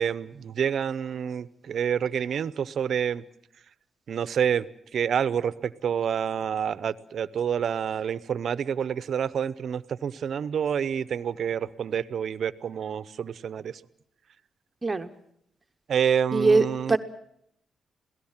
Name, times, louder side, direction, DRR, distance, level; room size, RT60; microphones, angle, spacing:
voice 1, 0.0-3.2 4.1-4.6 4.9-13.8 15.9-17.0, right 8 dB, 65° right, 17 dB, 0.8 m, -28 dB
voice 2, 16.3-17.0, right 3 dB, 25° right, 7 dB, 1.1 m, -22 dB
27.5 x 17.5 x 7.4 m, 0.72 s
cardioid pair, 90°, 0 cm